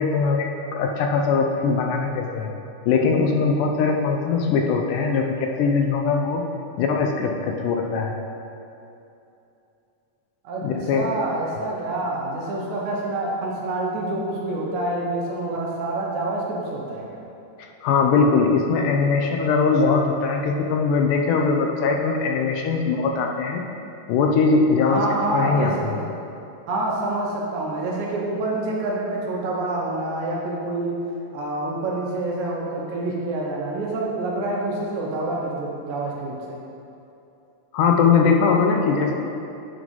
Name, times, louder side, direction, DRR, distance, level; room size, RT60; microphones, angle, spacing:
voice 1, 0.0-2.5 2.9-6.4 6.8-8.2 10.6-11.1 17.8-23.6 24.1-25.1 25.3-26.0 37.7-39.1, left 5 dB, 80° left, 2 dB, 2.1 m, -21 dB
voice 2, 10.4-17.2 24.8-26.0 26.7-31.0 31.3-36.6, right 2 dB, 70° right, -3 dB, 2.1 m, -27 dB
7.8 x 3.8 x 5.3 m, 2.8 s
omnidirectional pair, 3.8 m